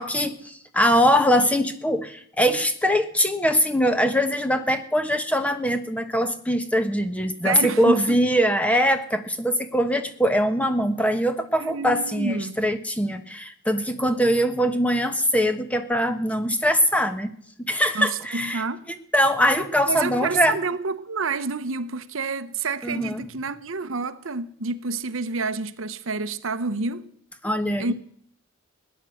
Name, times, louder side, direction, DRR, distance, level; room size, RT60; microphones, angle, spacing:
voice 1, 0.0-17.3 17.7-18.6 19.1-20.6 22.8-23.3 27.4-27.9, equal, 5° left, 1.1 m, -22 dB
voice 2, 7.4-8.2 11.6-12.6 17.9-18.1 18.3-18.9 19.9-27.1 27.8-27.9, right 4 dB, 80° right, 0.9 m, -28 dB
17.5 x 10.5 x 7.8 m
head